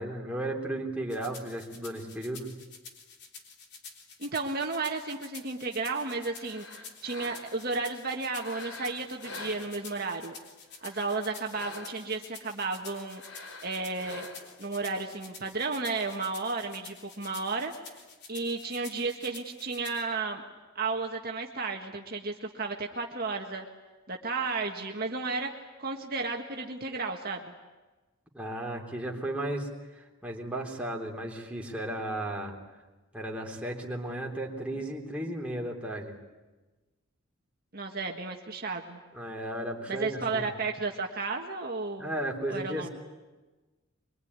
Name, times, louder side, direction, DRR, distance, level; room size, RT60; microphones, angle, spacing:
voice 1, 0.0-2.5 28.3-32.5 33.1-36.2 39.1-40.5 42.0-42.9, right 1 dB, 5° right, -2 dB, 3.5 m, -35 dB
sound 1, 1.1-20.0, left 5 dB, 55° left, 3.6 m, -49 dB
voice 2, 4.2-10.4 10.8-13.2 13.6-14.3 14.6-17.7 18.3-20.4 20.8-23.7 24.1-27.5 37.7-39.0 39.9-42.1 42.5-42.9, right 3 dB, 45° right, 1 dB, 1.7 m, -33 dB
sound 2, 6.2-7.7 8.3-10.2 10.7-12.2 13.1-14.7, left 3 dB, 80° left, 3.6 m, -46 dB
24.0 x 23.5 x 9.7 m, 1.2 s
head